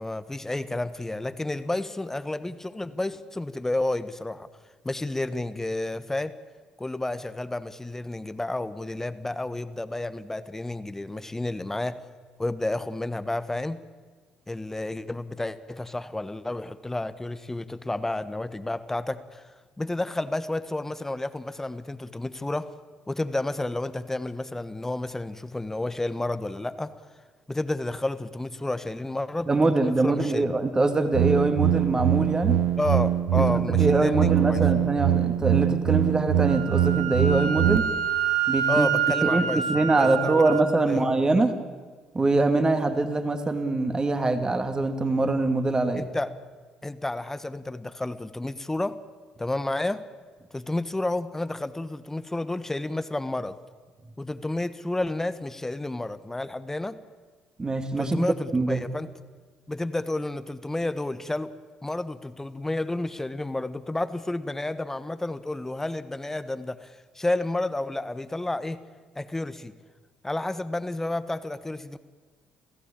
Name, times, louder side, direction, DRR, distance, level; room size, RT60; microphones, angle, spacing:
voice 1, 0.0-4.5 4.8-6.4 6.8-12.0 12.4-13.8 14.5-19.4 19.8-22.7 23.1-27.0 27.5-30.5 32.8-34.6 38.7-39.6 40.0-40.5 40.9-41.1 45.9-46.3 46.8-49.0 49.4-50.0 50.5-53.6 54.2-57.0 58.0-59.1 59.7-61.5 61.8-68.8 69.1-69.7 70.2-72.0, left 2 dB, 15° left, 13 dB, 1.3 m, -31 dB
voice 2, 29.5-32.6 33.4-33.5 33.8-37.8 38.5-38.9 39.2-41.5 42.1-46.1 57.6-58.8, right 2 dB, 25° right, 7 dB, 2.4 m, -24 dB
sound 1, 31.1-37.8, right 11 dB, 70° right, 1.0 m, -23 dB
Wind instrument woodwind instrument, 36.5-40.6, right 8 dB, 85° right, 1.9 m, -27 dB
28.5 x 15.5 x 8.8 m, 1.5 s
hypercardioid pair, 55°, 3 cm